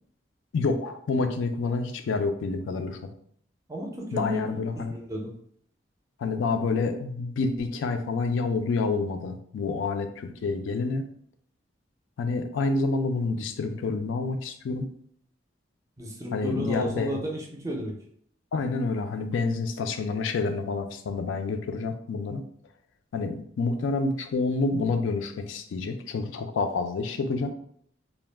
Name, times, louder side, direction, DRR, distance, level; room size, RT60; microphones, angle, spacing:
voice 1, 0.5-3.0 4.1-4.9 6.2-11.0 12.2-14.9 16.3-17.2 18.5-22.4 23.1-27.5, left 3 dB, 75° left, 7 dB, 0.3 m, -28 dB
voice 2, 3.7-5.3 16.0-17.9, equal, 15° right, 0 dB, 0.4 m, -33 dB
2.2 x 2.1 x 3.2 m, 0.63 s
head